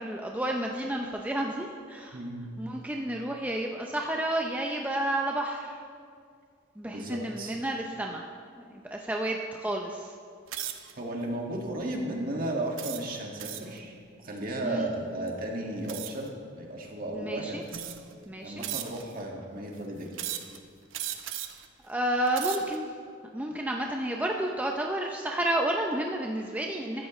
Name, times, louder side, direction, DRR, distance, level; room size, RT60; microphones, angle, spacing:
voice 1, 0.0-2.2 2.6-5.8 6.8-8.2 8.6-10.2 14.6-14.9 17.1-17.6 18.3-18.7 21.8-22.9 23.3-27.1, right 1 dB, 10° right, 0 dB, 0.6 m, -31 dB
voice 2, 2.1-2.5 6.9-7.5 11.0-17.6 18.4-20.1, right 1 dB, 45° right, -1 dB, 1.9 m, -34 dB
sound 1, 10.5-10.9 11.6-11.8 12.8-13.8 15.9-16.3 17.1-17.2 17.7-18.2 18.6-19.2 20.1-20.6 20.9-21.7 22.2-22.8, right 11 dB, 80° right, 0.8 m, -37 dB
15.5 x 13.0 x 3.2 m, 2.3 s
head